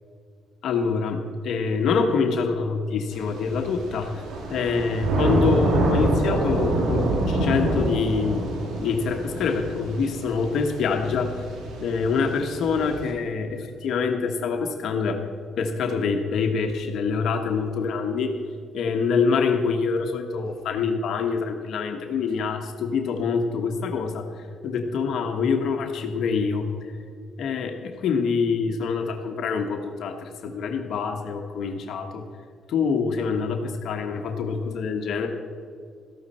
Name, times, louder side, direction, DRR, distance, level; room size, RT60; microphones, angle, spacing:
voice 1, 0.6-4.2 4.5-8.5 8.7-11.4 11.8-15.2 15.6-18.4 18.7-26.9 27.4-32.2 32.7-35.3, left 5 dB, 70° left, 4 dB, 1.2 m, -25 dB
Thunder / Rain, 3.1-13.1, right 2 dB, 85° right, 2.4 m, -26 dB
14.0 x 12.0 x 4.3 m, 2.3 s
cardioid pair, 90°, 0 cm